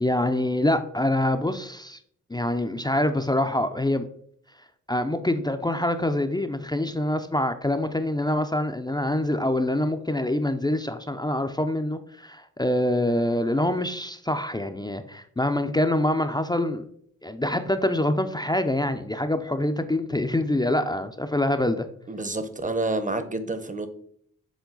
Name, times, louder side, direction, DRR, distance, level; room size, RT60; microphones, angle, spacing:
voice 1, 0.0-2.0 2.3-4.0 4.9-16.8 17.2-21.9, left 1 dB, 10° left, 7 dB, 0.5 m, -25 dB
voice 2, 22.1-23.9, right 2 dB, 25° right, 11 dB, 0.8 m, -28 dB
7.2 x 3.7 x 3.9 m, 0.64 s
cardioid pair, 55°, 33 cm